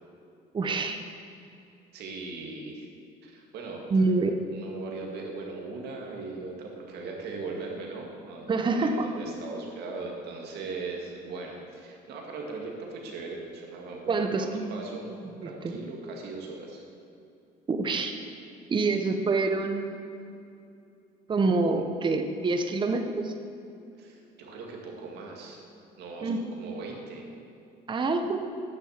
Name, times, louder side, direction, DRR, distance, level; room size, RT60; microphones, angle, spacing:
voice 1, 0.5-1.0 3.9-4.4 8.5-9.1 14.1-14.7 15.4-15.7 17.7-18.2 18.7-20.0 21.3-23.3 26.2-26.5 27.9-28.4, right 3 dB, 30° right, 6 dB, 0.8 m, -26 dB
voice 2, 1.9-2.9 3.2-4.1 4.5-15.1 15.4-16.8 24.0-25.6 26.0-27.3, right 3 dB, 75° right, 0 dB, 2.2 m, -39 dB
9.7 x 7.3 x 7.3 m, 2.6 s
cardioid pair, 110°, 17 cm